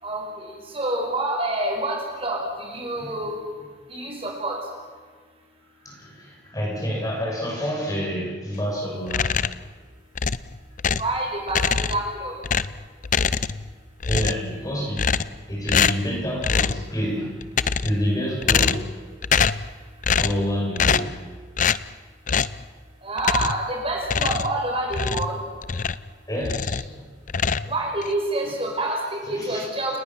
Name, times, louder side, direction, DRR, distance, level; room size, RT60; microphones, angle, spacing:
voice 1, 0.0-3.4 3.9-4.6 11.0-12.3 23.0-25.4 27.7-30.0, right 2 dB, 30° right, 0 dB, 5.5 m, -27 dB
voice 2, 5.8-9.3 14.1-15.1 15.5-17.3 17.8-18.8 20.2-21.2 26.3-27.1 27.6-27.7 29.3-29.6, equal, 20° left, -1 dB, 6.5 m, -28 dB
sound 1, 9.1-9.7 10.2-11.2 11.5-12.1 12.4-13.7 14.0-14.5 15.0-15.4 15.7-16.1 16.4-16.9 17.4-18.0 18.4-19.0 19.2-19.7 20.0-20.4 20.8-21.2 21.6-21.8 22.3-22.6 23.2-23.7 24.0-26.1 26.4-26.9 27.3-28.1, left 6 dB, 45° left, 0.6 m, -24 dB
29.0 x 19.5 x 7.4 m, 1.5 s
head